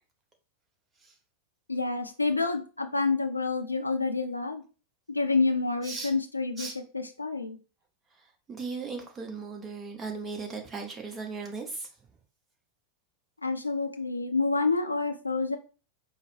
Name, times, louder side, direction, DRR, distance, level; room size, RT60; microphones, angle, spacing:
voice 1, 1.7-4.6 5.1-7.6 13.4-15.6, left 3 dB, 85° left, 6 dB, 0.5 m, -28 dB
voice 2, 8.2-11.9, right 4 dB, 20° right, 2 dB, 0.9 m, -37 dB
4.6 x 2.1 x 3.1 m, 0.35 s
figure-of-eight pair, 90°, 0 cm